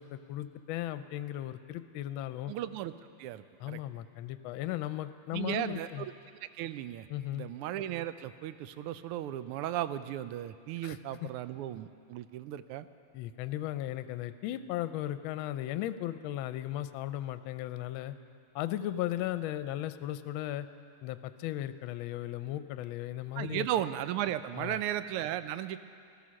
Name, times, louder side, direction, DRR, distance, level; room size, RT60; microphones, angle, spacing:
voice 1, 0.0-2.5 3.6-6.0 7.1-7.5 10.8-11.3 13.1-18.1 18.5-20.7 21.0-23.7 24.5-24.8, left 13 dB, 75° left, 12 dB, 1.3 m, -36 dB
voice 2, 2.5-2.9 3.2-3.8 5.3-6.1 6.6-7.1 7.3-12.9 23.4-25.8, right 12 dB, 90° right, 13 dB, 1.5 m, -35 dB
15.5 x 14.0 x 6.3 m, 2.4 s
omnidirectional pair, 2.4 m